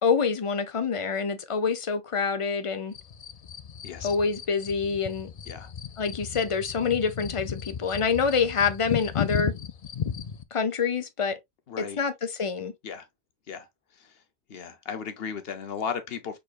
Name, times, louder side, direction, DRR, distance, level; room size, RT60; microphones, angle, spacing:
voice 1, 0.0-2.9 4.0-5.3 6.0-9.5 10.5-11.4 11.8-12.7, left 5 dB, 35° left, 0.6 m, -26 dB
sound 1, 2.9-10.4, left 8 dB, 80° left, 0.3 m, -35 dB
voice 2, 11.7-12.0 12.8-13.1 13.5-13.7 13.9-14.2 14.5-16.4, left 6 dB, 55° left, 1.0 m, -35 dB
5.0 x 4.3 x 2.3 m
omnidirectional pair, 1.3 m